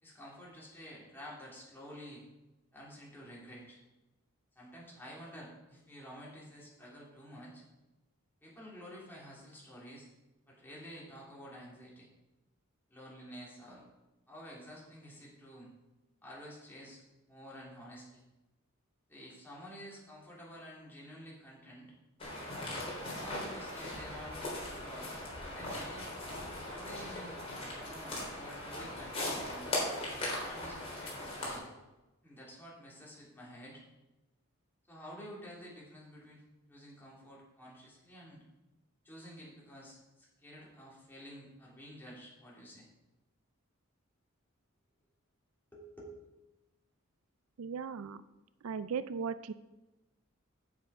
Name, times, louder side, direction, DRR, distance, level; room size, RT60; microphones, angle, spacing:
voice 1, 0.0-2.2 2.7-3.8 4.5-7.6 8.4-10.1 10.5-12.1 12.9-13.8 14.3-15.7 16.2-18.2 19.1-21.9 23.1-24.4 24.8-25.1 25.4-26.1 26.6-27.5 27.8-29.8 30.4-31.6 32.2-33.8 34.9-36.4 36.7-38.4 39.0-42.9 45.7-46.2, equal, 10° left, -6 dB, 3.2 m, -50 dB
sound 1, 22.2-31.6, left 1 dB, 30° left, 3.4 m, -39 dB
voice 2, 47.6-48.2 48.6-49.5, right 6 dB, 85° right, 14 dB, 0.4 m, -37 dB
8.4 x 8.2 x 4.8 m, 1.0 s
head